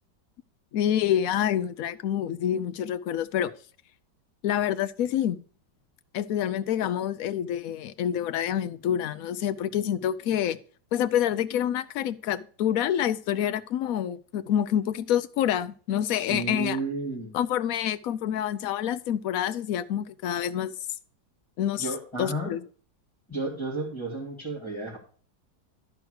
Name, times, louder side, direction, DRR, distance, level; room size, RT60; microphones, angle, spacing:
voice 1, 0.7-3.5 4.4-5.4 6.1-10.6 10.9-16.8 17.3-20.7 21.6-21.9 22.2-22.6, left 10 dB, 65° left, 0.9 m, -27 dB
voice 2, 16.2-17.3 21.8-22.5 23.3-25.0, right 2 dB, 15° left, 2.8 m, -32 dB
12.5 x 4.6 x 6.3 m
omnidirectional pair, 1.9 m